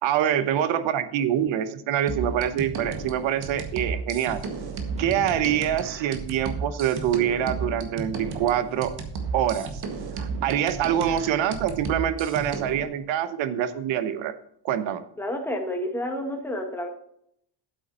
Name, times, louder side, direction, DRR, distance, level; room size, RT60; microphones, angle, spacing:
voice 1, 0.0-4.4 5.0-8.9 9.3-9.7 10.2-14.3 14.6-15.0, right 10 dB, 90° right, 12 dB, 1.0 m, -25 dB
sound 1, 2.1-12.9, right 4 dB, 60° right, 1.7 m, -33 dB
sound 2, 5.0-7.8 8.1-8.2, left 2 dB, 15° right, 2.1 m, -43 dB
voice 2, 15.2-16.9, left 1 dB, 5° left, 2 dB, 1.8 m, -30 dB
8.4 x 8.2 x 4.2 m, 0.69 s
cardioid pair, 125°, 44 cm